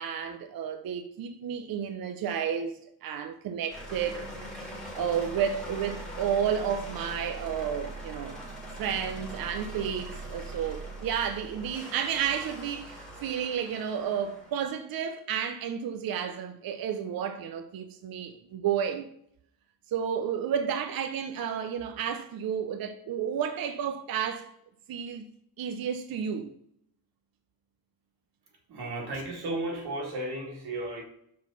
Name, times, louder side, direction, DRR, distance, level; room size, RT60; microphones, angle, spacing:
voice 1, 0.0-4.2 4.5-4.6 4.9-8.4 8.7-19.1 19.9-24.5 24.9-25.2 25.6-26.5, right 8 dB, 65° right, 0.7 m, -31 dB
sound 1, 3.7-14.6, right 1 dB, ahead, 1.9 m, -41 dB
voice 2, 28.7-31.0, right 2 dB, 80° right, 2.4 m, -34 dB
6.2 x 4.7 x 5.5 m
wide cardioid pair, 175°, 39 cm